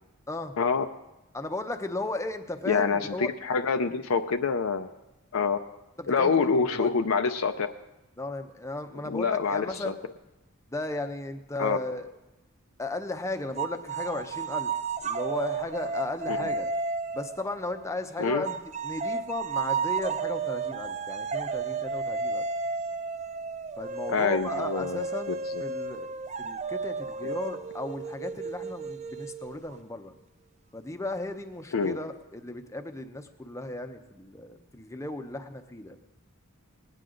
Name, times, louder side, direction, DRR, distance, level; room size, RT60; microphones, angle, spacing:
voice 1, 1.3-3.3 6.0-6.5 6.8-6.9 8.2-10.0 10.7-12.2 12.8-14.7 15.0-16.7 17.1-22.5 23.8-25.3 25.6-26.1 26.4-30.1 30.7-36.0, left 2 dB, 15° left, 7 dB, 0.7 m, -35 dB
voice 2, 2.7-4.9 5.3-5.6 6.1-7.7 9.0-9.9 11.6-11.8 16.3-16.5 18.2-18.4 24.1-25.0 27.2-27.3 31.7-32.0, left 5 dB, 70° left, 6 dB, 0.5 m, -26 dB
sound 1, 13.6-17.9 18.4-29.8, right 4 dB, 30° right, 0.4 m, -33 dB
20.0 x 9.5 x 3.8 m, 1.0 s
head